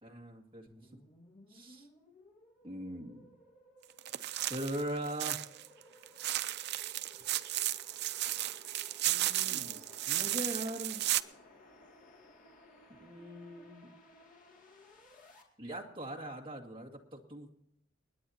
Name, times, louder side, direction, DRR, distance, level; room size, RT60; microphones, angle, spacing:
voice 1, 0.0-0.9 1.5-1.9 2.6-3.3 4.4-5.4 9.1-9.8 10.1-11.1 13.0-14.0 15.6-17.5, right 1 dB, 25° right, 1 dB, 2.0 m, -41 dB
sound 1, 0.7-15.4, left 1 dB, 45° left, 2.5 m, -60 dB
sound 2, 4.0-5.7 6.0-11.2, right 14 dB, 55° right, 0.5 m, -34 dB
sound 3, 9.4-13.3, left 2 dB, 75° left, 7.3 m, -60 dB
29.5 x 10.0 x 2.9 m, 0.76 s
head